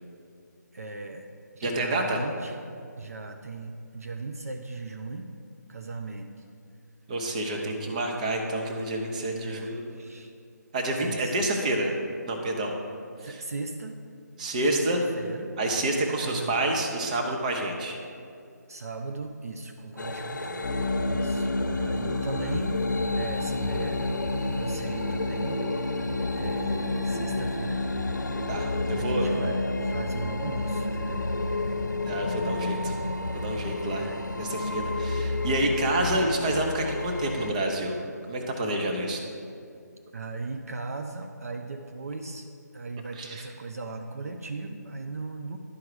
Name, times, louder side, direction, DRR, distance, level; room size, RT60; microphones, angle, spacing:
voice 1, 0.7-1.3 1.5-2.7 3.0-5.3 5.7-6.5 7.5-8.1 9.4-10.3 11.0-11.4 13.2-14.0 14.6-16.6 18.7-20.8 21.1-24.2 24.5-25.6 26.3-27.9 28.9-31.2 33.9-34.2 36.1-36.3 40.1-42.5 42.7-45.6, right 3 dB, 55° right, 5 dB, 0.5 m, -38 dB
voice 2, 1.6-2.2 7.1-9.9 10.7-11.9 12.3-12.7 13.2-13.4 14.4-15.0 15.6-18.0 28.5-29.4 32.0-32.9 33.2-34.0 34.4-38.0 38.3-39.2 43.2-43.4, right 1 dB, 25° right, 2 dB, 0.8 m, -28 dB
sound 1, 20.0-37.5, left 3 dB, 90° left, 0.6 m, -33 dB
sound 2, 20.6-35.0, left 2 dB, 55° left, 1.1 m, -31 dB
11.0 x 4.7 x 4.8 m, 2.4 s
figure-of-eight pair, 160°, 10 cm